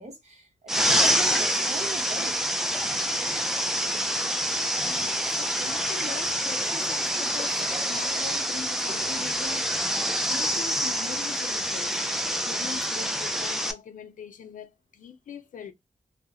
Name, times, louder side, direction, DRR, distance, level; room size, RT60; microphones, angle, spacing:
voice 1, 0.0-2.4, right 4 dB, 55° right, 1.0 m, -39 dB
sound 1, 0.7-13.7, equal, 5° right, 0.3 m, -26 dB
voice 2, 4.8-7.6 7.9-9.8 10.3-12.0 12.5-15.7, left 7 dB, 75° left, 0.5 m, -41 dB
2.3 x 2.1 x 2.8 m
wide cardioid pair, 170°, 14 cm